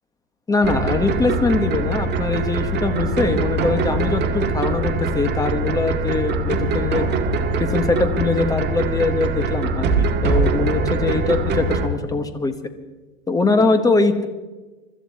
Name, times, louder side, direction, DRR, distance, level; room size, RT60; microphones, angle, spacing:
voice 1, 0.5-7.1 7.6-12.5 13.3-14.2, left 3 dB, 10° left, 8 dB, 1.3 m, -22 dB
sound 1, 0.6-11.9, right 3 dB, 25° right, 1.8 m, -22 dB
25.0 x 13.5 x 4.2 m, 1.2 s
supercardioid pair, 135°, 38 cm